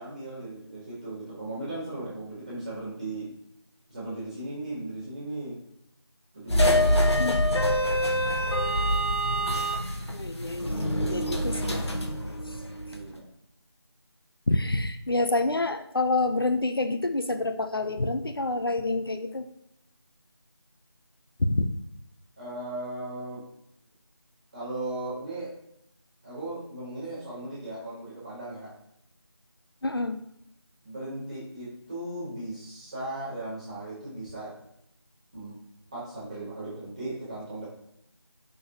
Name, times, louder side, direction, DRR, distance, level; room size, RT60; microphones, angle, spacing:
voice 1, 0.0-3.3 3.9-5.6 6.3-7.4 12.9-13.2 22.4-23.4 24.5-25.5 26.2-28.7 30.8-34.5 35.3-35.6 35.9-37.7, right 2 dB, 15° right, -10 dB, 2.2 m, -37 dB
sound 1, 6.5-13.0, equal, 80° left, 1.4 m, -25 dB
voice 2, 10.1-11.9 14.5-19.5 21.4-21.7 29.8-30.2, left 2 dB, 60° left, 8 dB, 0.7 m, -27 dB
6.1 x 5.5 x 3.0 m, 0.77 s
figure-of-eight pair, 175°, 14 cm